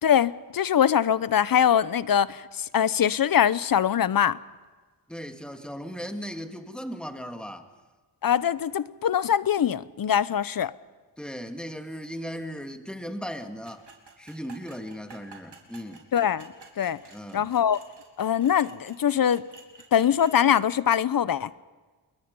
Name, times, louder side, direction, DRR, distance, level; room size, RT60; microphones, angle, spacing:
voice 1, 0.0-4.4 8.2-10.7 16.1-17.0 17.3-17.8 18.2-19.4 19.9-21.5, left 9 dB, 50° left, 0.8 m, -23 dB
voice 2, 5.1-7.7 11.2-13.9 14.2-16.1 17.1-17.5, equal, ahead, 2.1 m, -37 dB
sound 1, 13.6-20.4, right 4 dB, 65° right, 4.2 m, -51 dB
29.0 x 21.5 x 5.4 m
cardioid pair, 85°, 43 cm